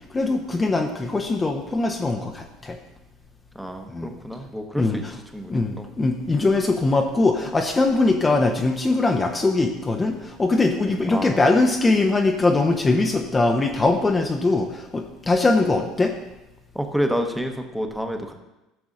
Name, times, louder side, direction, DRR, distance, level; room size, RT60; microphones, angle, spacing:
voice 1, 0.1-2.8 3.9-4.1 4.7-5.1 5.5-16.2, left 3 dB, 20° left, 2 dB, 0.8 m, -21 dB
voice 2, 3.5-5.0 5.3-5.9 10.9-11.4 16.7-18.3, equal, ahead, 5 dB, 1.1 m, -29 dB
15.0 x 6.9 x 2.6 m, 0.99 s
figure-of-eight pair, 65°, 0 cm